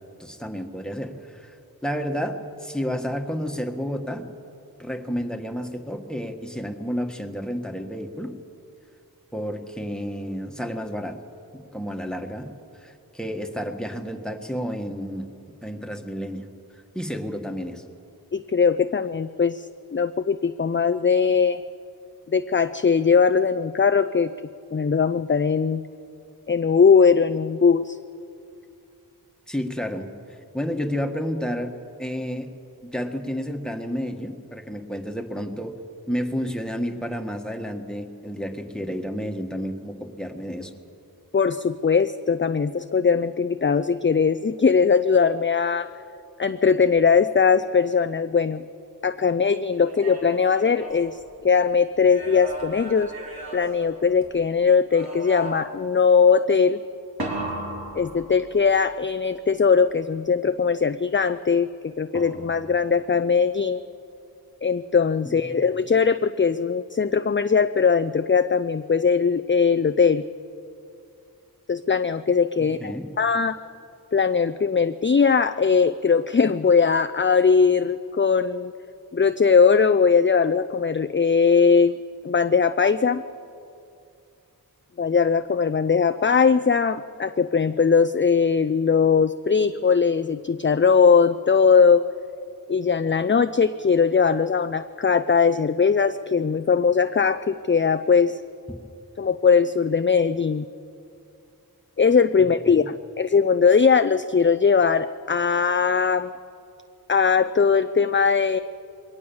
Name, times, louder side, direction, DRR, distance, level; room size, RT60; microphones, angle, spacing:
voice 1, 0.2-4.2 4.8-8.3 9.3-11.2 11.5-15.3 15.6-16.5 16.7-17.8 29.5-31.7 32.0-32.5 32.8-35.8 36.1-40.7 65.2-65.6 72.8-73.1 102.4-102.9, equal, ahead, 4 dB, 1.6 m, -31 dB
voice 2, 18.3-19.7 19.9-21.6 22.3-24.3 24.7-25.8 26.5-28.0 41.3-45.9 46.4-48.6 49.0-53.1 53.5-56.8 57.9-63.8 64.6-70.2 71.7-73.6 74.1-78.7 79.1-81.9 82.2-83.2 85.0-92.0 92.7-98.4 99.2-100.6 102.0-106.3 107.1-108.6, left 5 dB, 30° left, 10 dB, 0.5 m, -20 dB
sound 1, 49.7-51.6 52.0-54.4 54.9-55.9 57.2-58.8 62.1-62.8, right 1 dB, 70° right, 3.8 m, -36 dB
22.0 x 18.0 x 7.1 m, 2.5 s
wide cardioid pair, 45°, 38 cm